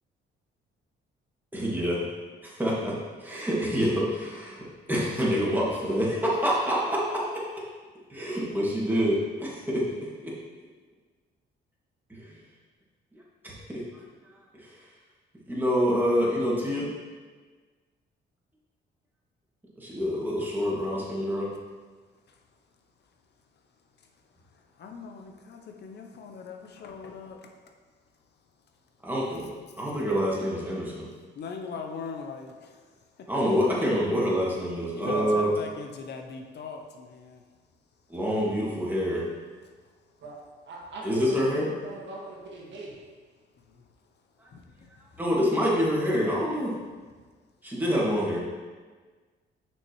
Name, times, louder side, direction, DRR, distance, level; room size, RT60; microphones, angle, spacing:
voice 1, 1.5-2.0 2.4-7.6 8.1-10.4 12.1-12.4 13.4-13.8 14.6-14.8 15.5-16.9 19.8-21.5 29.0-31.1 33.3-35.5 38.1-39.3 41.0-41.7 44.4-44.5 45.2-46.8 47.6-48.4, equal, 10° right, -6 dB, 2.0 m, -27 dB
voice 2, 24.8-27.5 31.4-32.8 34.9-37.4 43.7-43.8 44.5-44.9, left 5 dB, 60° left, 3 dB, 0.7 m, -40 dB
voice 3, 40.7-42.9, right 2 dB, 65° right, -3 dB, 1.7 m, -38 dB
6.3 x 6.1 x 3.1 m, 1.4 s
cardioid pair, 90°, 20 cm